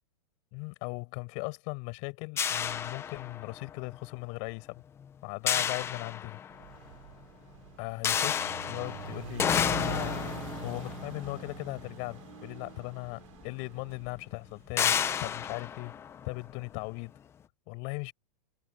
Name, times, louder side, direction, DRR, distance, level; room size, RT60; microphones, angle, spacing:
voice 1, 0.5-4.8 5.2-6.4 7.8-10.3 10.6-16.0 16.2-17.1 17.7-18.1, left 34 dB, 35° left, 6.0 m, -38 dB
sound 1, 2.4-3.7 5.5-6.8 8.0-12.5 13.4-13.5 13.9-14.1 14.8-16.8, left 8 dB, 10° left, 0.7 m, -31 dB
sound 2, 6.5-14.9, right 16 dB, 55° right, 6.2 m, -44 dB
supercardioid pair, 160°, 21 cm